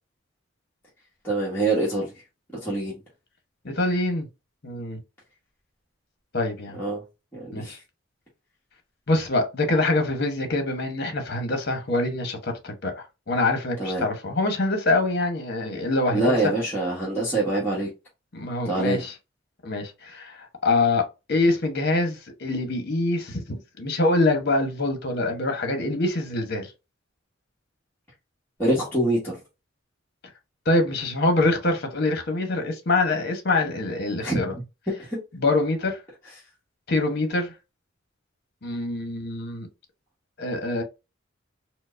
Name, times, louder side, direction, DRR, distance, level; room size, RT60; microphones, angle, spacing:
voice 1, 1.2-2.1 2.6-3.0 6.8-7.0 7.3-7.8 13.8-14.1 16.1-17.9 18.6-19.0 28.6-29.4 34.2-34.4 35.1-35.2, right 2 dB, 10° left, 1.2 m, -25 dB
voice 2, 3.6-4.3 4.6-5.0 6.3-6.8 7.5-7.8 9.1-16.5 18.3-19.1 19.6-21.0 21.3-26.7 30.7-34.5 35.3-36.0 36.9-37.5 38.6-39.7 40.4-40.8, left 2 dB, 55° left, 1.0 m, -25 dB
4.5 x 2.1 x 2.5 m
head